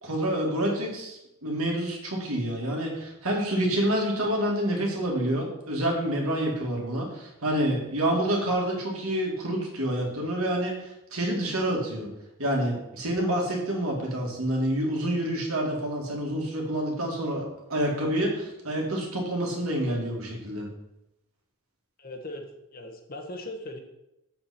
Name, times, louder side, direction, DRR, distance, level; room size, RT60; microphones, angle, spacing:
voice 1, 0.0-12.1 12.4-20.7, right 1 dB, 75° right, -1 dB, 2.3 m, -28 dB
voice 2, 22.0-22.4 22.7-23.8, left 1 dB, 40° left, 4 dB, 1.2 m, -38 dB
7.6 x 7.4 x 4.3 m, 0.90 s
head